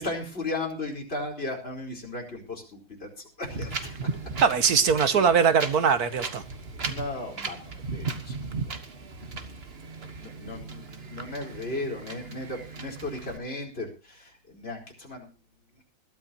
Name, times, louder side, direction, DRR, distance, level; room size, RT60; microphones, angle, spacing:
voice 1, 0.0-4.2 5.1-5.8 6.8-8.3 10.0-15.3, left 2 dB, 30° left, 0 dB, 4.8 m, -36 dB
Wind, 3.5-13.4, right 4 dB, 35° right, 1.4 m, -37 dB
voice 2, 4.4-6.4, right 6 dB, 55° right, 11 dB, 1.4 m, -21 dB
21.0 x 13.0 x 2.9 m, 0.31 s
omnidirectional pair, 2.2 m